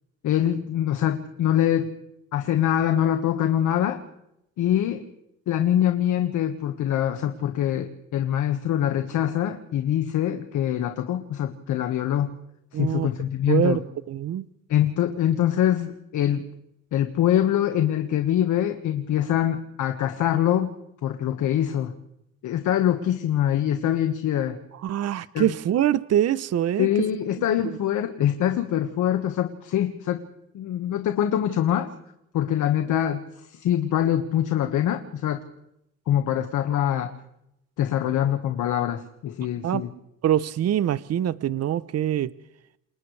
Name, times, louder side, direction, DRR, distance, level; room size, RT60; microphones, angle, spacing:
voice 1, 0.2-1.9 2.3-4.0 4.6-5.0 5.5-12.4 12.7-13.8 14.7-16.5 16.9-20.7 21.0-21.9 22.4-24.6 25.3-25.5 26.8-30.2 30.5-31.9 32.3-35.4 36.1-37.1 37.8-39.9, left 11 dB, 80° left, 5 dB, 1.6 m, -24 dB
voice 2, 12.7-13.1 13.5-13.8 14.1-14.4 24.8-26.9 39.6-39.8 40.2-42.3, right 11 dB, 55° right, 16 dB, 0.8 m, -24 dB
28.5 x 28.0 x 3.3 m, 0.82 s
cardioid pair, 90°, 30 cm